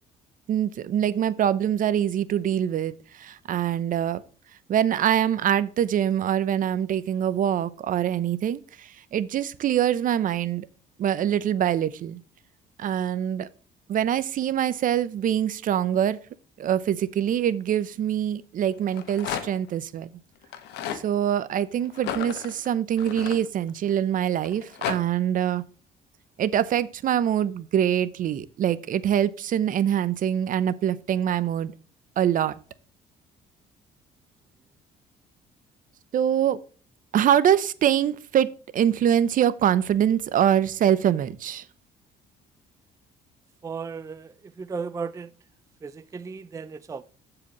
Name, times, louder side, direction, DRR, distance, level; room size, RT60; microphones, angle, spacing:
voice 1, 0.5-4.2 4.7-10.7 11.0-12.2 12.8-13.5 13.9-16.2 16.6-20.1 20.9-25.6 26.4-31.7 32.2-32.5 36.1-36.6 37.1-38.5 38.7-41.6, right 10 dB, 50° right, 0.7 m, -24 dB
Rattle, 18.8-19.7 20.4-21.0 21.9-23.9 24.4-25.0, left 9 dB, 85° left, 1.2 m, -33 dB
voice 2, 43.6-45.3 45.8-47.0, right 5 dB, 20° right, 0.4 m, -35 dB
14.5 x 4.9 x 3.0 m
cardioid pair, 110°, 17 cm